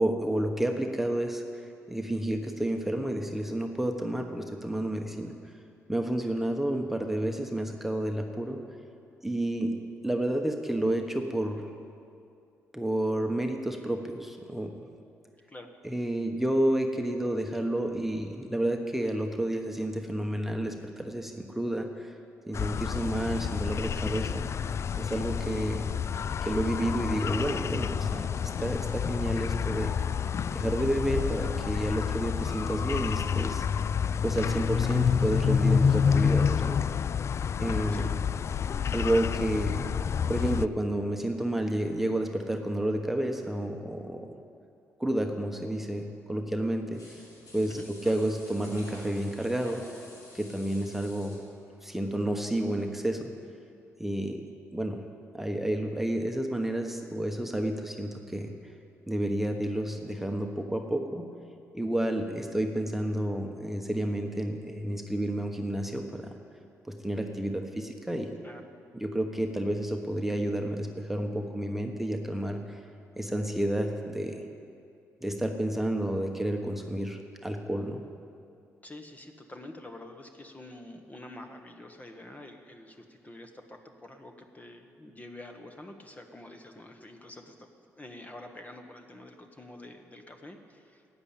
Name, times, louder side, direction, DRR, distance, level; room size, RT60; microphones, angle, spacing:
voice 1, 0.0-5.3 5.9-8.6 9.2-9.8 10.0-11.7 12.7-14.7 15.8-22.1 22.5-24.4 24.9-25.9 26.4-28.3 28.6-29.9 30.5-33.7 34.2-36.8 37.6-38.1 38.9-39.9 40.3-44.3 45.0-47.2 47.5-49.8 50.3-51.4 51.8-53.3 54.0-54.4 54.7-55.0 55.3-58.5 59.1-61.3 61.7-66.3 66.8-68.3 68.9-72.8 73.2-74.5 75.2-78.0, right 1 dB, 5° right, 3 dB, 1.2 m, -30 dB
sound 1, 22.5-40.7, left 7 dB, 50° left, 0.3 m, -28 dB
voice 2, 24.2-24.7 37.9-38.1 47.7-47.9 68.4-68.7 78.8-87.7 87.9-91.1, left 1 dB, 25° left, 5 dB, 1.4 m, -47 dB
sound 2, 46.9-52.9 53.3-53.4, left 1 dB, 70° left, 3.5 m, -50 dB
12.5 x 8.9 x 8.6 m, 2.5 s
supercardioid pair, 55°, 6 cm